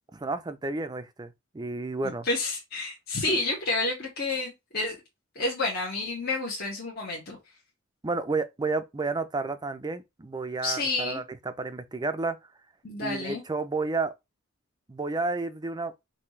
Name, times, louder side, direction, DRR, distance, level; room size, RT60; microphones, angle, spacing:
voice 1, 0.1-2.3 3.3-3.4 8.0-12.4 13.0-14.1 14.9-15.9, right 3 dB, 20° right, 0.5 m, -31 dB
voice 2, 2.0-5.0 5.4-7.4 10.6-11.2 12.8-13.4, left 2 dB, 50° left, 1.6 m, -30 dB
5.8 x 2.7 x 3.2 m
head